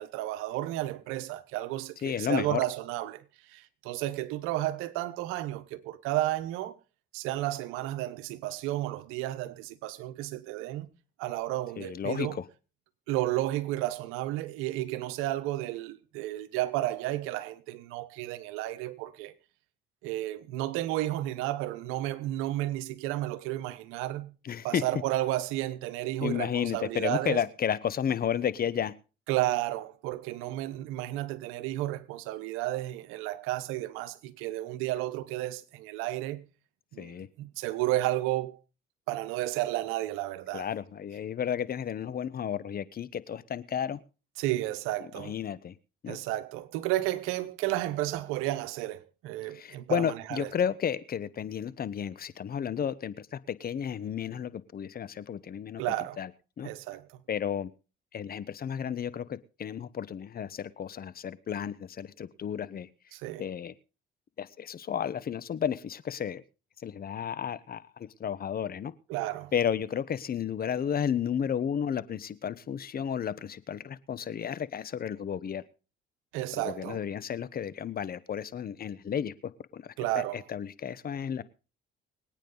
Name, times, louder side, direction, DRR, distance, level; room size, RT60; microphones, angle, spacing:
voice 1, 0.0-6.8 7.1-10.9 11.2-12.4 13.1-19.3 20.0-24.3 24.6-27.4 29.3-36.5 36.9-38.6 39.1-40.7 44.4-45.3 46.1-50.5 55.8-56.2 56.6-57.2 63.1-63.5 69.1-69.5 76.3-77.0 80.0-80.4, right 15 dB, 85° right, 1.1 m, -32 dB
voice 2, 2.0-2.6 11.8-12.4 24.4-24.8 26.2-28.9 37.0-37.3 40.5-44.0 45.2-45.7 46.0-46.2 49.5-55.8 56.2-56.3 56.6-56.7 57.3-57.7 58.1-62.9 63.4-63.7 64.4-66.4 66.8-68.9 69.5-75.6 76.5-79.9 80.3-81.4, left 8 dB, 45° left, 1.1 m, -32 dB
24.5 x 9.0 x 4.0 m
supercardioid pair, 75°, 21 cm